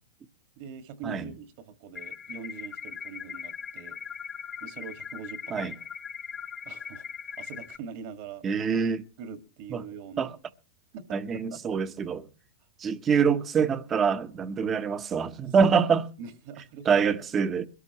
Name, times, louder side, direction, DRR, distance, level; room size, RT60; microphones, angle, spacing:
voice 1, 0.6-4.0 4.6-5.9 6.7-7.0 7.4-8.4 9.2-10.4 10.9-11.8 15.6-17.0, right 6 dB, 50° right, 1.9 m, -43 dB
sound 1, 1.9-7.8, left 7 dB, 20° left, 0.7 m, -40 dB
voice 2, 8.4-9.0 9.7-9.8 10.2-10.3 11.1-12.2 12.8-16.0 16.9-17.7, right 6 dB, 20° right, 0.9 m, -25 dB
22.0 x 13.5 x 3.0 m
supercardioid pair, 140°, 0 cm